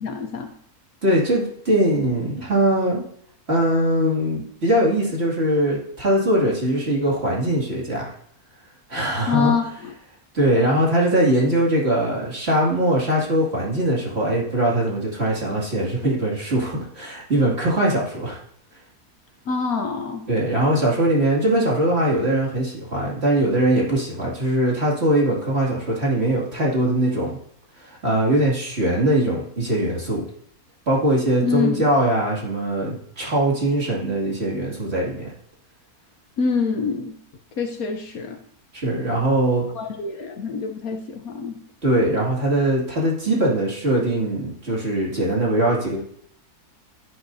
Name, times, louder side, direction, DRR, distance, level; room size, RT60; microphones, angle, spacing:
voice 1, 0.0-0.5 9.3-9.7 19.5-20.3 31.4-31.9 36.4-37.2 37.6-38.4 39.7-41.6, left 5 dB, 70° left, 3 dB, 1.3 m, -25 dB
voice 2, 1.0-3.0 3.5-8.1 8.9-9.5 10.3-18.4 20.3-27.4 27.8-30.2 30.9-35.3 38.7-39.7 41.8-46.0, right 1 dB, 40° right, -4 dB, 2.6 m, -21 dB
16.0 x 8.4 x 2.7 m, 0.67 s
omnidirectional pair, 1.6 m